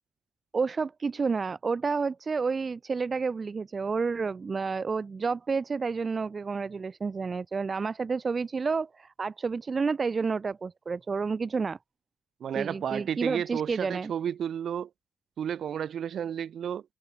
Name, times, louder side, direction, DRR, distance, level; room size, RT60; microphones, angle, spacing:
voice 1, 0.5-11.8 12.5-14.1, right 4 dB, 40° right, 3.9 m, -30 dB
voice 2, 12.4-14.9 15.4-16.8, right 9 dB, 60° right, 7.1 m, -32 dB
hypercardioid pair, 45°, 0 cm